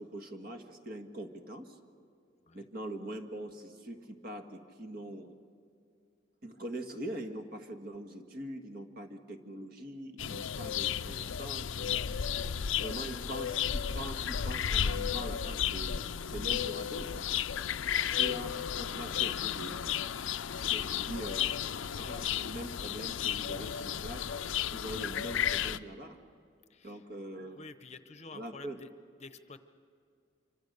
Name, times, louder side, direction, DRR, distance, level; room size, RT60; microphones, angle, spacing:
voice 1, 0.0-1.8 2.5-5.4 6.4-12.0 12.8-17.3 18.1-19.8 20.5-21.5 22.0-24.3 24.7-26.2 26.8-27.6 28.3-28.8, right 1 dB, 50° right, 5 dB, 1.7 m, -43 dB
sound 1, 10.2-25.8, left 9 dB, 85° left, 0.5 m, -33 dB
voice 2, 13.0-13.3 20.6-21.7 22.0-22.2 26.7-27.0 27.6-28.9 29.2-29.6, left 3 dB, 35° left, 11 dB, 0.8 m, -51 dB
26.5 x 24.5 x 6.7 m, 2.4 s
head